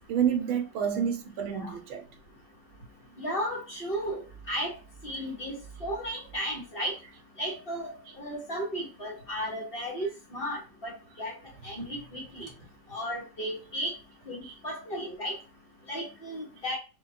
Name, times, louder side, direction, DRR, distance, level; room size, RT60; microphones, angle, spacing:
voice 1, 0.1-2.0 14.5-14.6, right 8 dB, 80° right, 1.7 m, -28 dB
voice 2, 3.2-4.2 4.5-4.7 5.0-6.9 7.4-11.3 11.6-12.5 12.9-13.9 14.2-15.3 15.9-16.8, equal, 30° left, 1.6 m, -34 dB
5.5 x 3.1 x 2.3 m
omnidirectional pair, 2.3 m